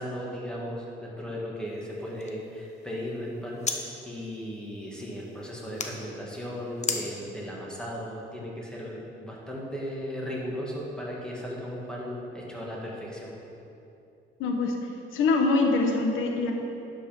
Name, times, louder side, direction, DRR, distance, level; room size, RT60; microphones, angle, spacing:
voice 1, 0.0-13.4, equal, 5° left, -4 dB, 2.2 m, -36 dB
sound 1, 1.7-3.8 4.1-5.9 6.8-7.0, left 4 dB, 35° left, 0.9 m, -37 dB
voice 2, 14.4-14.8 15.1-16.5, left 3 dB, 85° left, 2 dB, 1.2 m, -24 dB
11.5 x 5.4 x 5.4 m, 2.8 s
cardioid pair, 90°, 20 cm